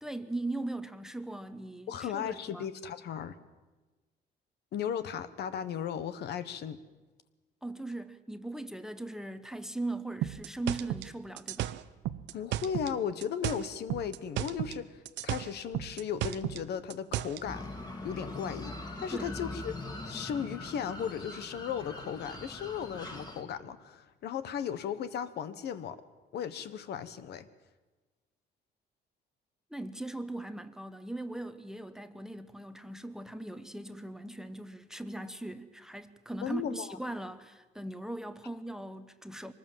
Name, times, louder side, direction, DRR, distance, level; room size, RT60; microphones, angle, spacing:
voice 1, 0.0-2.7 7.6-11.8 19.1-19.3 29.7-39.5, right 2 dB, 5° right, 0.9 m, -39 dB
voice 2, 1.9-3.3 4.7-6.8 12.3-17.7 18.0-19.7 20.1-26.0 26.3-27.5 36.4-37.0, left 8 dB, 65° left, 1.3 m, -36 dB
sound 1, 10.2-13.0 13.2-14.8 15.1-17.4, right 13 dB, 80° right, 0.8 m, -34 dB
sound 2, 17.4-23.4, left 2 dB, 20° left, 2.8 m, -42 dB
24.0 x 20.0 x 7.5 m
cardioid pair, 140°, 18 cm